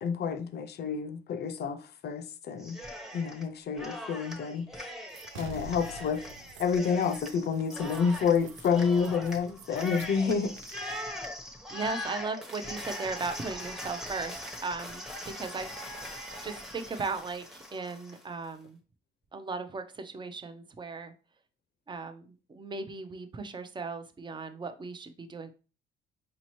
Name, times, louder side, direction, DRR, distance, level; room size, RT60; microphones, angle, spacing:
voice 1, 0.0-2.8 3.1-4.7 5.3-6.2 6.6-10.5, left 6 dB, 55° left, 0.5 m, -29 dB
Cheering, 2.6-3.5 3.8-18.2, left 1 dB, ahead, 0.9 m, -41 dB
sound 1, 5.1-10.9, right 5 dB, 80° right, 0.5 m, -48 dB
voice 2, 11.4-15.7 16.4-18.8 19.3-21.1 21.9-25.5, right 4 dB, 25° right, 0.5 m, -37 dB
5.1 x 2.8 x 3.0 m
cardioid pair, 90°, 20 cm